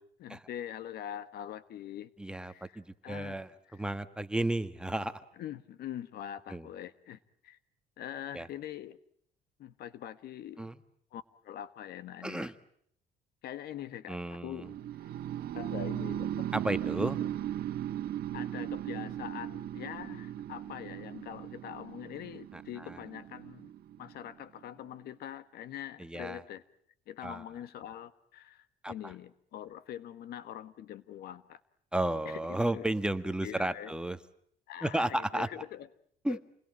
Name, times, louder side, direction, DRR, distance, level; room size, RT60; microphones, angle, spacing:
voice 1, 0.2-2.1 2.4-3.4 5.4-7.2 7.4-7.6 8.0-9.0 9.6-10.7 11.1-12.5 13.4-14.7 15.5-16.5 18.3-23.7 24.0-26.6 27.1-31.6 32.2-32.8 33.4-33.9 34.7-35.9 36.3-36.4, left 11 dB, 70° left, 14 dB, 1.4 m, -43 dB
voice 2, 2.2-5.2 6.5-6.7 8.3-8.5 10.6-10.8 12.2-12.5 14.1-14.7 16.5-17.2 22.5-23.0 26.0-26.4 27.2-27.4 28.8-29.1 31.9-34.2 34.8-35.5 36.2-36.4, right 1 dB, 5° right, 10 dB, 1.4 m, -33 dB
sound 1, 14.6-24.6, right 11 dB, 70° right, 1.5 m, -37 dB
28.5 x 21.0 x 8.8 m, 0.68 s
cardioid pair, 110°, 17 cm